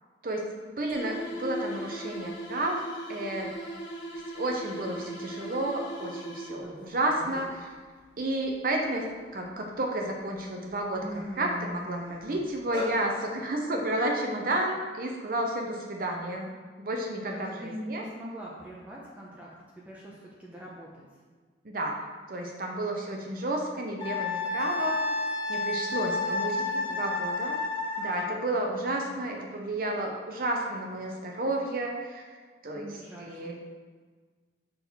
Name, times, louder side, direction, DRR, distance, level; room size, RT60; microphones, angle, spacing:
voice 1, 0.2-2.8 3.1-3.6 4.4-7.7 8.2-16.5 16.8-18.0 21.6-25.0 25.5-26.6 26.9-27.6 28.0-32.3 32.6-32.9 33.2-33.6, right 1 dB, 55° right, 1 dB, 0.7 m, -31 dB
sound 1, 0.9-6.8, right 1 dB, 90° left, 1.3 m, -38 dB
voice 2, 6.6-7.0 17.3-21.0 23.1-23.5 26.2-27.1 28.9-29.3 32.7-33.6, equal, 10° right, -5 dB, 0.7 m, -44 dB
sound 2, 6.8-6.9 7.2-7.6 8.1-9.6 10.2-10.4 10.7-12.9, left 1 dB, 25° right, 1.8 m, -39 dB
Wind instrument woodwind instrument, 24.0-28.3, left 3 dB, 25° left, 1.2 m, -30 dB
6.7 x 3.6 x 5.7 m, 1.5 s
head